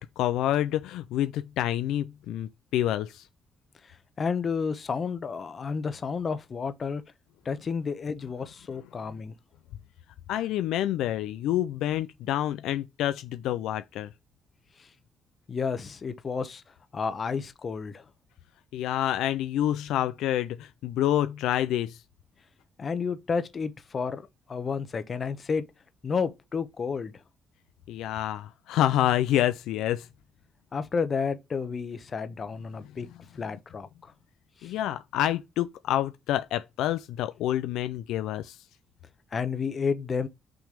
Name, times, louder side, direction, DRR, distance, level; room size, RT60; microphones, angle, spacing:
voice 1, 0.0-3.2 10.3-14.1 18.7-22.0 27.9-30.1 34.6-38.6, left 12 dB, 90° left, 0.4 m, -28 dB
voice 2, 4.2-7.0 7.4-9.3 15.5-16.6 16.9-18.0 22.8-24.2 24.5-25.6 26.0-27.1 30.7-33.1 33.3-33.9 34.6-34.7 39.3-40.3, left 5 dB, 45° left, 0.9 m, -31 dB
6.0 x 3.3 x 5.2 m
cardioid pair, 90°, 0 cm